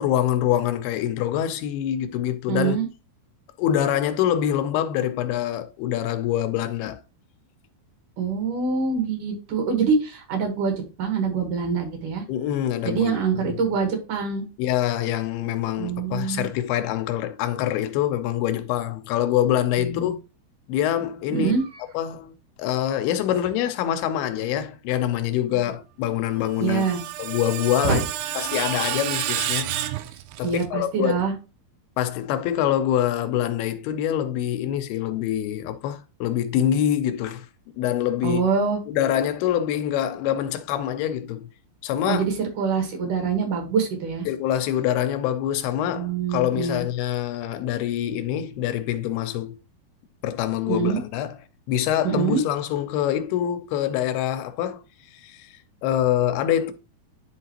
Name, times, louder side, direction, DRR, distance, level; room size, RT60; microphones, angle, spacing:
voice 1, 0.0-2.8 3.6-7.0 12.3-13.6 14.6-20.2 20.7-21.5 21.9-26.9 27.2-28.0 28.4-29.8 30.4-31.2 32.0-37.5 37.8-38.5 38.9-41.5 41.8-42.2 44.3-49.6 50.2-51.4 51.7-54.8 55.2-55.5 55.8-56.7, left 11 dB, 85° left, 2.6 m, -25 dB
voice 2, 2.5-2.9 8.2-12.2 12.8-14.5 15.8-16.5 19.8-20.1 21.3-21.6 25.5-25.7 26.6-27.0 27.8-28.0 30.4-31.3 38.2-38.8 42.0-44.3 45.9-46.9 50.7-51.0 52.0-52.4, right 5 dB, 60° right, 2.6 m, -25 dB
Screech, 26.4-30.7, right 12 dB, 85° right, 2.5 m, -30 dB
10.5 x 3.9 x 2.9 m
omnidirectional pair, 4.4 m